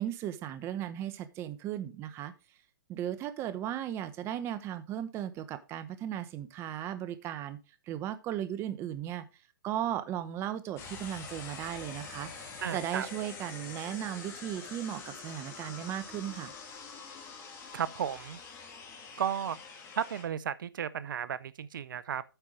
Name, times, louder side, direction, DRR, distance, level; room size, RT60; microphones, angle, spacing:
voice 1, 0.0-2.3 2.9-7.6 7.9-9.2 9.6-16.5, right 11 dB, 25° right, 0.9 m, -36 dB
sound 1, 10.8-20.2, left 5 dB, 25° left, 2.8 m, -45 dB
voice 2, 12.6-13.1 17.7-18.4 19.2-19.6 20.0-22.2, right 9 dB, 70° right, 0.6 m, -34 dB
9.0 x 5.6 x 4.9 m
hypercardioid pair, 145°, 11 cm